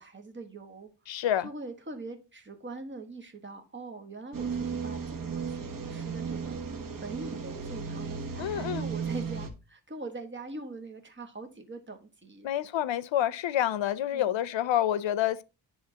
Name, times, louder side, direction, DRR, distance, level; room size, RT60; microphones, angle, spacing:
voice 1, 0.0-0.9 1.4-6.6 7.0-12.5 14.1-14.4, right 3 dB, 25° right, 1.4 m, -42 dB
voice 2, 1.1-1.5 8.4-8.9 12.4-15.4, left 11 dB, 75° left, 0.6 m, -28 dB
sound 1, 4.3-9.5, right 5 dB, 45° right, 1.1 m, -35 dB
10.5 x 3.7 x 2.8 m
wide cardioid pair, 105°, 45 cm